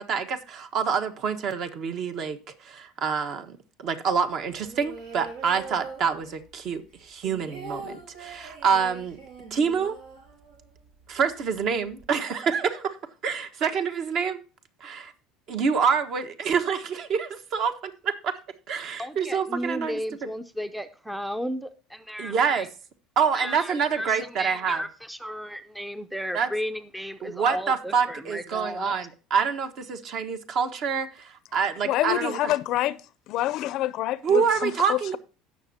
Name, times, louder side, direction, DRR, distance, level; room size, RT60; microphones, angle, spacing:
voice 1, 0.0-9.2 9.5-10.0 11.1-13.0 13.2-14.4 14.8-15.1 15.5-18.4 18.7-20.0 22.2-22.7 23.2-24.8 26.3-26.5 27.2-32.6 34.2-35.2, right 6 dB, 50° right, 1.4 m, -27 dB
'Do you believe in love', 4.5-6.6 6.9-10.9 11.2-11.3 11.5-12.0, right 4 dB, 90° right, 6.4 m, -42 dB
voice 2, 19.0-22.7 23.3-28.9, equal, ahead, 0.6 m, -34 dB
voice 3, 31.9-33.0 33.3-35.2, left 15 dB, 55° left, 0.5 m, -27 dB
16.5 x 6.4 x 2.8 m
cardioid pair, 140°, 0 cm